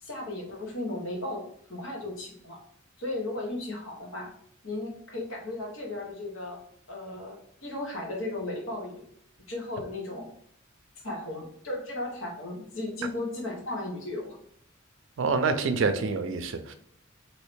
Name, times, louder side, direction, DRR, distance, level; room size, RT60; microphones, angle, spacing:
voice 1, 0.0-2.6 3.0-4.3 4.6-6.6 6.9-9.0 9.5-10.2 11.0-14.4, left 2 dB, 75° left, -1 dB, 1.1 m, -35 dB
voice 2, 15.2-16.7, right 4 dB, 70° right, 9 dB, 0.4 m, -26 dB
3.1 x 2.8 x 3.2 m, 0.67 s
head